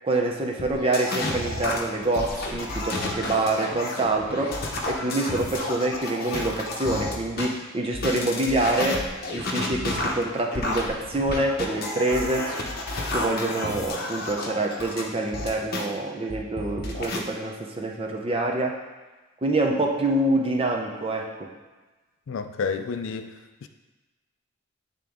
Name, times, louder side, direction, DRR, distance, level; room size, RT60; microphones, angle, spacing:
voice 1, 0.0-4.6 4.9-9.0 9.3-12.5 13.1-18.7 19.4-21.5, right 2 dB, 25° right, 1 dB, 0.6 m, -26 dB
sound 1, 0.6-7.5 7.9-15.9 16.3-17.2, left 2 dB, 45° left, 0.8 m, -31 dB
voice 2, 22.3-23.3 23.6-23.7, left 5 dB, 65° left, 8 dB, 0.4 m, -30 dB
8.8 x 3.8 x 3.5 m, 1.2 s
head